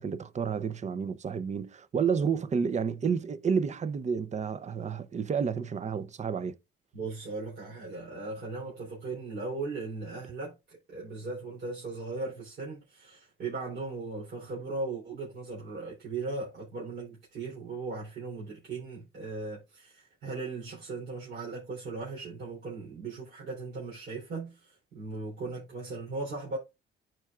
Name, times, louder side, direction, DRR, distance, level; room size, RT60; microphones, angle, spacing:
voice 1, 0.0-6.5, right 6 dB, 35° right, 0.6 m, -30 dB
voice 2, 6.9-26.6, right 3 dB, 55° right, 3.4 m, -38 dB
12.0 x 4.6 x 2.4 m
cardioid pair, 90°, 20 cm